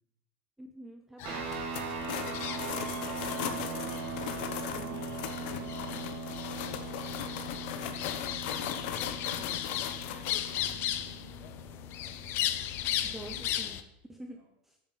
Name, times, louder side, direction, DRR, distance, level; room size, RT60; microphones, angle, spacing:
voice 1, 0.6-1.5 4.7-5.0 13.0-13.8 14.1-14.8, right 1 dB, 5° right, 3 dB, 0.6 m, -47 dB
sound 1, 1.2-13.8, left 11 dB, 40° left, 0.7 m, -37 dB
sound 2, 1.2-13.0, right 4 dB, 65° right, 2.7 m, -40 dB
sound 3, 1.5-10.7, left 9 dB, 60° left, 1.0 m, -39 dB
voice 2, 2.3-3.8 4.1-12.2 12.8-13.6 14.3-14.5, right 3 dB, 35° right, 0 dB, 2.8 m, -54 dB
13.5 x 7.1 x 4.1 m, 0.89 s
supercardioid pair, 155°, 6 cm